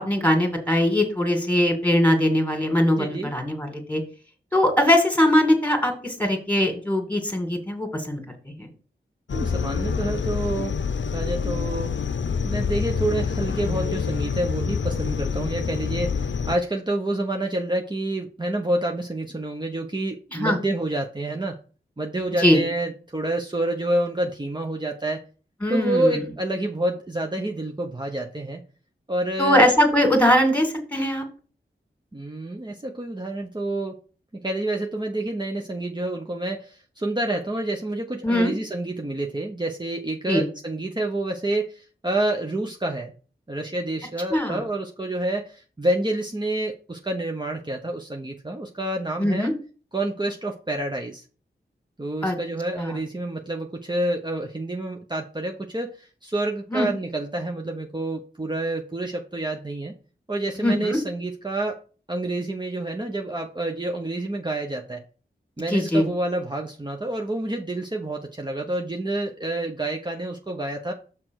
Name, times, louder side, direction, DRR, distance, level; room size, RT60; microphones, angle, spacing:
voice 1, 0.0-4.0 4.5-8.2 8.6-8.7 20.3-20.6 22.4-22.6 25.6-26.2 29.4-31.2 38.2-38.5 40.3-40.4 44.3-44.6 49.2-49.5 52.2-52.3 52.8-53.0 56.7-56.9 60.6-61.0 65.7-66.1, left 1 dB, 5° left, 4 dB, 2.3 m, -21 dB
voice 2, 2.9-3.3 9.3-10.8 11.1-11.9 12.4-21.6 22.0-25.2 25.7-28.6 29.1-29.7 32.1-34.0 34.3-43.1 43.5-49.5 49.9-51.2 52.0-59.9 60.3-61.8 62.1-65.0 65.6-70.9, right 1 dB, 20° right, 2 dB, 1.0 m, -28 dB
sound 1, 9.3-16.6, left 6 dB, 70° left, 0.7 m, -27 dB
5.9 x 4.5 x 6.3 m, 0.37 s
cardioid pair, 45°, 20 cm